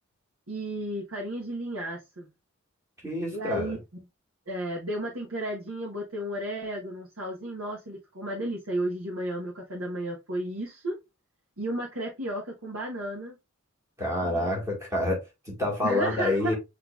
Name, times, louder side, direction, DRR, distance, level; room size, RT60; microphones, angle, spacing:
voice 1, 0.5-2.3 3.3-3.8 4.5-10.9 11.6-13.4 14.2-14.6 15.8-16.6, right 1 dB, 90° right, 1.3 m, -33 dB
voice 2, 3.0-3.7 14.0-15.2 15.5-16.6, left 1 dB, 15° right, 2.0 m, -27 dB
6.2 x 3.2 x 2.4 m
head